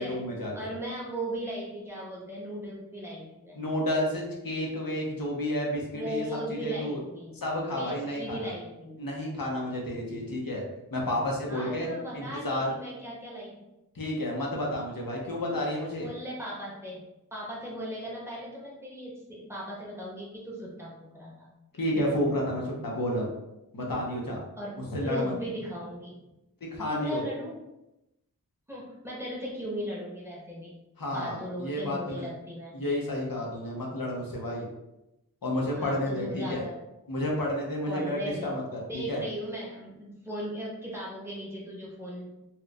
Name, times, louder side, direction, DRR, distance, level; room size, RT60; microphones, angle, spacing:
voice 1, 0.0-0.7 3.6-6.2 6.5-7.0 7.3-8.5 9.0-10.6 10.9-11.9 12.1-12.7 13.9-16.1 21.8-23.3 23.7-24.4 24.9-25.3 26.6-27.3 31.0-32.3 32.7-34.7 35.4-36.6 37.1-39.2, left 1 dB, 75° left, -2 dB, 0.8 m, -31 dB
voice 2, 0.5-3.6 5.9-7.4 7.8-9.0 11.5-13.6 14.7-14.8 16.0-17.0 17.3-21.5 24.6-26.2 26.9-27.6 28.7-30.8 31.1-32.8 35.7-36.7 37.9-38.5 38.9-42.3, equal, 5° right, -5 dB, 1.2 m, -37 dB
4.3 x 2.3 x 2.4 m, 0.92 s
wide cardioid pair, 45°, 35 cm